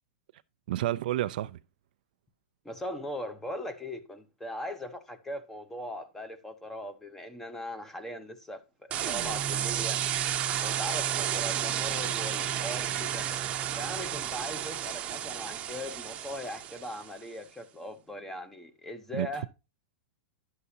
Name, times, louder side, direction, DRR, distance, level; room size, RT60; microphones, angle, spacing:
voice 1, 0.7-1.6 19.1-19.5, right 14 dB, 65° right, 0.4 m, -30 dB
voice 2, 2.6-8.6 8.9-10.0 10.6-13.3 13.8-19.5, left 1 dB, 5° left, 0.9 m, -39 dB
sound 1, 8.9-17.1, right 10 dB, 25° right, 0.9 m, -32 dB
11.0 x 6.6 x 2.8 m
supercardioid pair, 150°, 5 cm